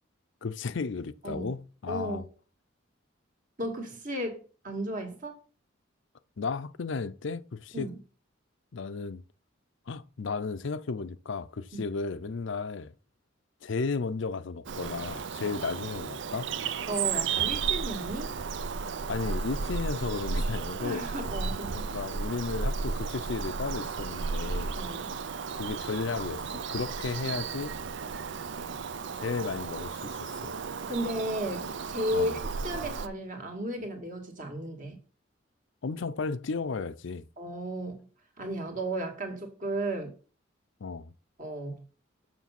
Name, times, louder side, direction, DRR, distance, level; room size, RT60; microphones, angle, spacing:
voice 1, 0.4-2.2 6.4-7.9 8.7-9.2 9.9-12.9 13.6-16.5 19.1-21.1 21.9-24.8 25.6-27.7 28.6-28.7 29.2-30.5 32.1-32.4 35.8-37.3 40.8-41.1, left 4 dB, 65° left, 0.5 m, -34 dB
voice 2, 1.9-2.2 3.6-5.4 7.7-8.0 11.7-11.8 16.9-18.4 20.8-21.9 24.8-25.1 30.9-32.4 32.6-35.0 37.4-38.1 38.4-40.2 41.4-41.8, right 1 dB, 40° right, 2.1 m, -34 dB
Bird vocalization bird call bird song, 14.7-33.1, right 5 dB, 60° right, 0.5 m, -34 dB
7.2 x 6.1 x 5.9 m
head